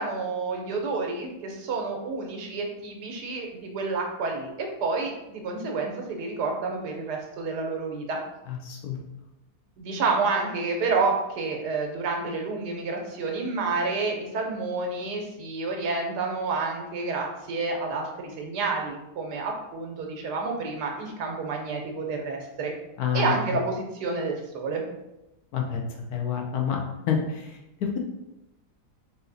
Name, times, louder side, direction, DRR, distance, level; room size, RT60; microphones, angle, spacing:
voice 1, 0.0-8.2 9.8-22.7 23.1-24.8, right 3 dB, 80° right, 2 dB, 1.4 m, -29 dB
voice 2, 8.5-9.0 23.0-23.3 25.5-25.8 26.1-26.8 27.1-28.0, left 7 dB, 70° left, 1 dB, 1.1 m, -28 dB
4.0 x 2.8 x 3.9 m, 0.92 s
omnidirectional pair, 1.8 m